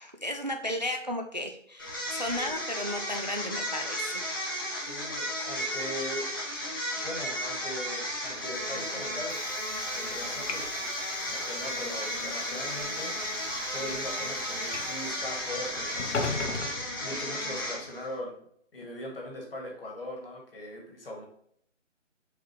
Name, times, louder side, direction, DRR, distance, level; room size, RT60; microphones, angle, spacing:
voice 1, 0.0-4.4, left 1 dB, 35° right, 4 dB, 0.4 m, -34 dB
sound 1, 1.8-18.1, equal, 15° left, 0.8 m, -34 dB
voice 2, 4.8-6.3 7.0-9.4 9.9-10.9 11.3-16.6 17.0-18.4 18.7-21.2, left 1 dB, 45° left, 0 dB, 2.1 m, -40 dB
Train / Sliding door, 8.4-17.7, left 4 dB, 65° left, 0.9 m, -40 dB
7.0 x 4.8 x 3.0 m, 0.66 s
figure-of-eight pair, 165°, 38 cm